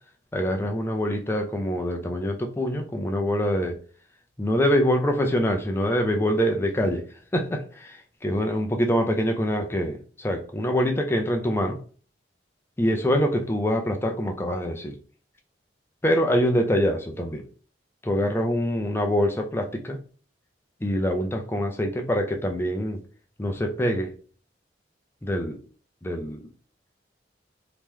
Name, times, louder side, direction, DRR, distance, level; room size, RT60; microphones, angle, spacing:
voice 1, 0.3-3.8 4.4-7.1 7.3-11.8 12.8-15.0 16.0-17.5 18.0-20.0 20.8-23.0 23.4-24.1 25.2-25.6 26.0-26.5, equal, 15° left, 0.4 m, -25 dB
3.1 x 2.9 x 3.6 m
head